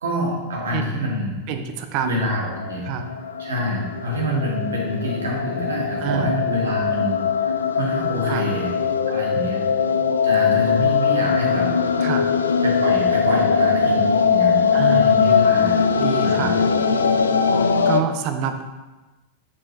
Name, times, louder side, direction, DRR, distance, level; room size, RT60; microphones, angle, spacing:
voice 1, 0.0-1.4 2.0-2.9 3.4-8.7 9.1-9.7 10.2-11.7 12.6-15.8 16.2-16.6, equal, 70° right, -2 dB, 1.9 m, -26 dB
voice 2, 1.5-2.2 2.8-3.1 6.0-6.4 8.3-8.5 9.3-9.5 10.0-10.1 12.0-12.4 14.7-15.5 16.0-16.6 17.8-18.6, right 7 dB, 45° right, 7 dB, 0.7 m, -27 dB
sound 1, 2.5-18.0, left 6 dB, 70° left, 0.4 m, -20 dB
7.4 x 6.0 x 3.2 m, 1.1 s
figure-of-eight pair, 90°, 0 cm